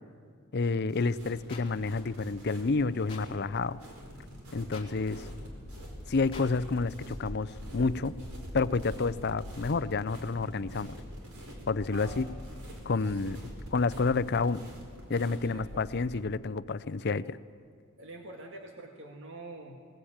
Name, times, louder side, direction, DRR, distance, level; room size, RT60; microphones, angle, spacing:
voice 1, 0.5-3.8 4.5-5.3 6.1-8.1 8.5-10.9 11.7-12.3 12.9-13.4 13.7-14.6 15.1-17.4, left 4 dB, 50° left, 16 dB, 0.6 m, -29 dB
sound 1, 0.9-16.2, equal, 90° right, 4.5 m, -45 dB
sound 2, 1.5-1.6 3.1-3.2 4.7-4.9 6.3-6.5, left 4 dB, 25° left, 2.7 m, -44 dB
voice 2, 11.9-12.4 13.0-13.5 15.4-16.0 18.0-20.0, right 2 dB, 60° right, 2 dB, 2.0 m, -46 dB
20.5 x 19.5 x 8.8 m, 2.2 s
head